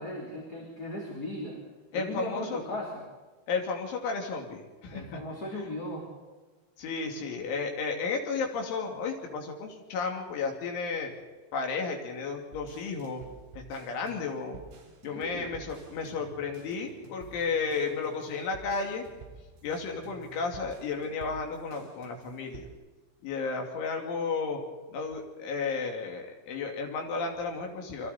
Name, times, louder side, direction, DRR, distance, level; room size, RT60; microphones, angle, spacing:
voice 1, 0.0-1.6 1.9-3.0 4.9-6.1 15.1-15.5, left 1 dB, 25° left, -3 dB, 3.3 m, -37 dB
voice 2, 1.9-2.6 3.5-5.2 5.5-5.6 6.8-11.1 11.5-13.2 13.5-14.6 15.0-19.0 19.6-22.7 23.2-24.6 24.9-28.1, left 4 dB, 80° left, 2 dB, 5.0 m, -33 dB
sound 1, 12.5-22.7, right 5 dB, 65° right, 5.7 m, -51 dB
29.0 x 24.0 x 4.3 m, 1.3 s
omnidirectional pair, 5.4 m